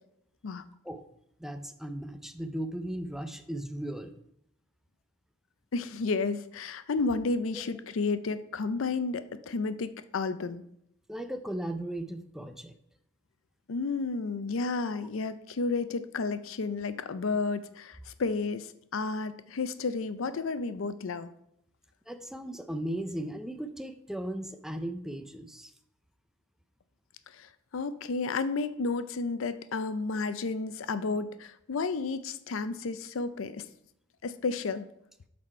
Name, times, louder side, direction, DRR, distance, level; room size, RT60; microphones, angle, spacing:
voice 1, 1.4-4.1 7.5-7.6 11.1-12.7 14.9-15.0 22.1-25.7, right 1 dB, ahead, 8 dB, 0.5 m, -37 dB
voice 2, 5.7-10.6 13.7-21.3 27.3-33.6 34.2-34.9, left 4 dB, 75° left, 13 dB, 0.5 m, -32 dB
7.6 x 4.2 x 5.4 m, 0.74 s
head